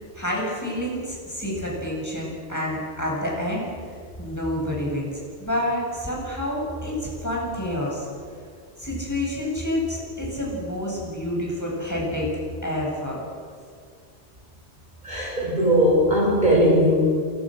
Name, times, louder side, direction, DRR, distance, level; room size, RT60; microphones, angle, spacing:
voice 1, 0.1-3.7 4.2-5.1 5.4-8.1 8.8-12.3 12.6-13.2, left 1 dB, 15° left, -3 dB, 7.9 m, -28 dB
voice 2, 15.0-17.1, equal, 45° right, -3 dB, 7.3 m, -19 dB
28.0 x 23.5 x 6.6 m, 2.1 s
omnidirectional pair, 1.1 m